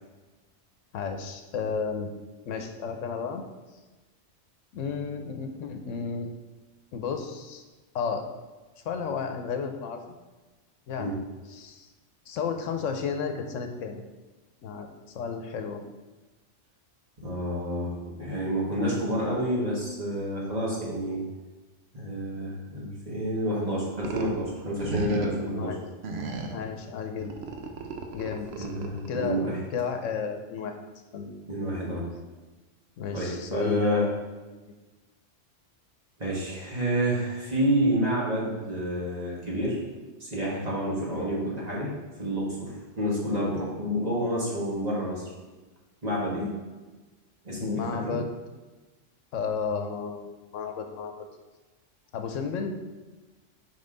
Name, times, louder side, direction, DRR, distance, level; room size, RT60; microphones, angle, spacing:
voice 1, 0.9-2.1 2.5-3.4 4.7-6.3 6.9-7.6 7.9-8.2 8.8-10.2 10.9-11.2 11.5-11.9 12.3-14.0 14.6-15.8 25.5-25.8 26.4-27.3 28.1-28.7 29.1-29.4 29.7-30.8 31.1-31.3 33.0-34.2 47.6-48.3 49.3-51.3 52.1-52.7, left 6 dB, 85° left, 6 dB, 1.0 m, -32 dB
voice 2, 17.2-17.9 18.2-21.2 21.9-25.7 28.6-29.6 31.5-32.0 33.1-34.1 36.2-39.8 40.2-41.9 42.2-42.7 43.0-45.2 46.0-46.5 47.4-48.2, equal, 35° right, -5 dB, 1.8 m, -29 dB
sound 1, 24.0-24.4 24.8-25.5 26.0-26.6 27.2-29.3, right 3 dB, 60° right, 0.9 m, -35 dB
5.5 x 5.4 x 3.9 m, 1.2 s
omnidirectional pair, 1.3 m